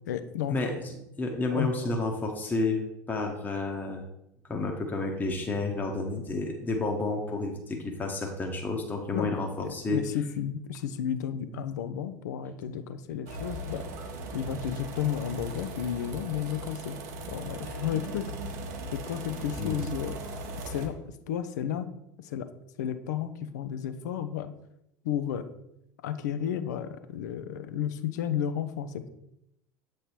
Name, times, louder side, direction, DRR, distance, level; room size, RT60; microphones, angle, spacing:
voice 1, 0.1-0.6 1.5-1.7 9.1-13.9 14.3-17.0 17.3-18.3 18.9-20.2 20.6-21.0 21.3-21.9 22.2-22.5 22.8-24.5 25.0-25.5 26.0-29.1, left 9 dB, 65° left, 11 dB, 0.5 m, -32 dB
voice 2, 1.2-2.8 3.1-4.0 4.5-10.0 14.5-14.6 19.6-19.8, left 3 dB, 15° left, 1 dB, 1.0 m, -30 dB
sound 1, 13.3-20.9, right 1 dB, 60° right, 0.9 m, -38 dB
7.7 x 3.2 x 4.3 m, 0.84 s
figure-of-eight pair, 70°, 10 cm